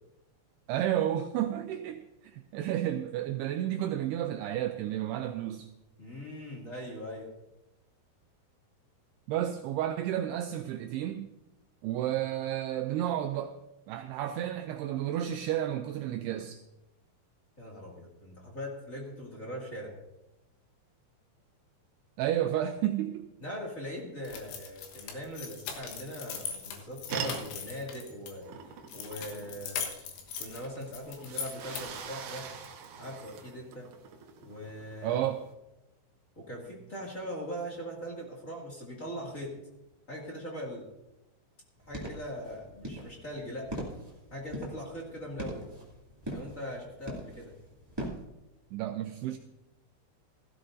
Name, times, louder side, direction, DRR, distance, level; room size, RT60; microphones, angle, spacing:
voice 1, 0.7-5.7 9.3-11.3 11.8-13.6 13.9-16.6 22.2-23.3 35.0-35.4 48.7-49.4, right 11 dB, 85° right, 7 dB, 2.3 m, -31 dB
voice 2, 6.0-7.3 17.6-19.9 23.4-28.5 28.9-29.9 30.4-32.5 33.0-33.9 34.4-35.2 36.3-39.5 40.1-40.9 41.9-43.8 44.3-45.7 46.3-47.5, equal, 30° left, -4 dB, 1.4 m, -40 dB
sound 1, 24.2-28.3 28.9-32.1, left 7 dB, 90° left, 3.8 m, -40 dB
sound 2, 27.1-35.5, right 6 dB, 70° right, 2.1 m, -43 dB
sound 3, 41.8-48.2, right 1 dB, 15° right, 0.9 m, -42 dB
16.5 x 15.0 x 2.6 m, 0.95 s
omnidirectional pair, 5.3 m